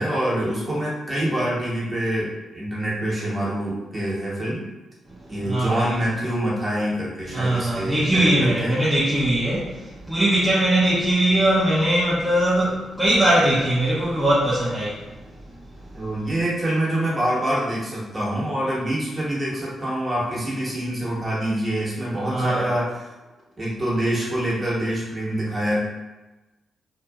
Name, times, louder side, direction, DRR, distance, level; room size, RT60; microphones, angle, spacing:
voice 1, 0.0-4.6 5.3-8.7 15.9-23.1 23.6-25.8, right 1 dB, 35° right, -6 dB, 1.3 m, -25 dB
voice 2, 5.4-6.0 7.3-15.1 22.3-22.7, right 1 dB, 15° right, -9 dB, 0.8 m, -21 dB
2.6 x 2.5 x 2.3 m, 1.1 s
hypercardioid pair, 40°, 0 cm